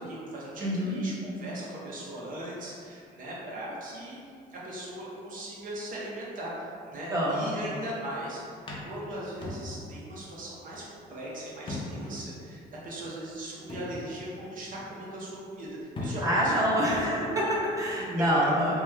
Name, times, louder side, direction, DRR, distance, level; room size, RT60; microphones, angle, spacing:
voice 1, 0.0-4.2 4.5-8.6 8.8-15.7 16.0-17.1 18.0-18.5, right 1 dB, 55° right, -6 dB, 0.7 m, -39 dB
voice 2, 0.6-1.0 7.1-7.5 16.2-18.8, equal, 20° right, -6 dB, 0.8 m, -26 dB
sound 1, 8.7-10.1 10.4-10.5 11.7-12.2 12.6-12.7 13.7-14.5 15.6-15.7 16.0-16.6, left 2 dB, 30° left, 0.6 m, -38 dB
3.1 x 2.0 x 3.5 m, 2.4 s
cardioid pair, 110°, 17 cm